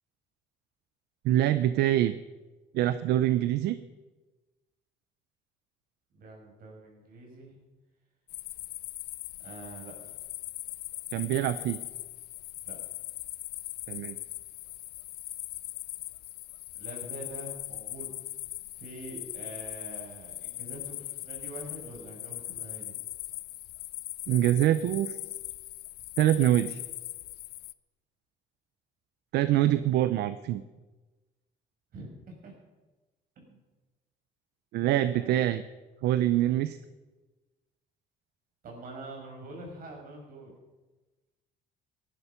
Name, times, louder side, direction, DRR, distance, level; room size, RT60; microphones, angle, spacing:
voice 1, 1.2-2.1 2.7-3.8 11.1-11.8 13.9-14.2 24.3-25.2 26.2-26.8 29.3-30.6 34.7-35.6 36.0-36.8, right 13 dB, 80° right, 13 dB, 0.7 m, -25 dB
voice 2, 6.1-7.6 9.4-10.2 12.7-12.8 16.7-18.1 18.8-22.9 31.9-32.5 33.4-33.6 35.1-35.4 36.5-36.6 38.6-40.5, right 2 dB, 60° right, 1 dB, 6.1 m, -45 dB
sound 1, 8.3-27.7, left 16 dB, 70° left, 0.5 m, -40 dB
17.0 x 11.5 x 5.9 m, 1.2 s
cardioid pair, 110°, 17 cm